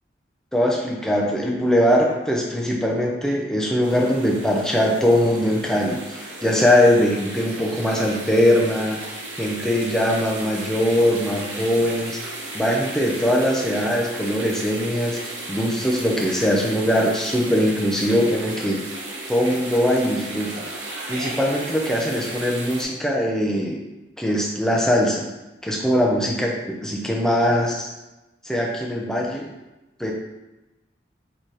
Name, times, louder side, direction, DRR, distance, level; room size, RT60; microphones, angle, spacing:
voice 1, 0.5-9.0 9.4-12.2 12.5-15.2 15.5-18.8 19.3-20.7 21.1-23.8 24.2-25.3 25.6-26.6 26.8-27.9 28.4-29.5 30.0-30.1, equal, 5° left, -2 dB, 0.6 m, -21 dB
sound 1, 3.8-22.8, right 2 dB, 80° right, 0.9 m, -35 dB
4.1 x 3.9 x 3.2 m, 1.0 s
head